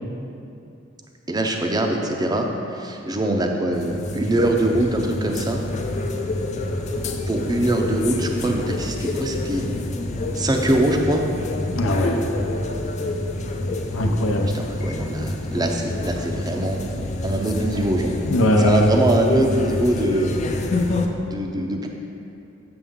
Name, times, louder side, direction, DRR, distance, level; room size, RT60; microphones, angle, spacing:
voice 1, 1.3-5.6 7.3-9.6 10.3-11.2 14.5-16.8 17.2-18.1 18.6-20.3 21.2-21.9, right 1 dB, 20° right, 2 dB, 0.5 m, -23 dB
sound 1, 3.7-21.1, left 2 dB, 35° left, 0.4 m, -27 dB
voice 2, 11.7-12.2 13.9-14.5 18.3-19.0, left 1 dB, 85° left, 3 dB, 0.7 m, -19 dB
6.9 x 6.8 x 3.7 m, 2.7 s
head